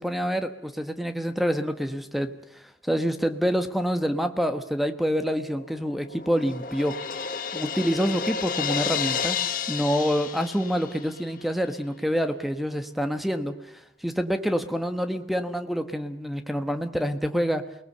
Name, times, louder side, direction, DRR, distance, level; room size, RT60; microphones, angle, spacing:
voice 1, 0.0-7.0 7.5-9.4 9.7-17.6, equal, ahead, 8 dB, 1.2 m, -27 dB
Crash cymbal, 5.6-11.3, left 7 dB, 50° left, 1.4 m, -31 dB
29.0 x 19.5 x 6.8 m, 0.74 s
head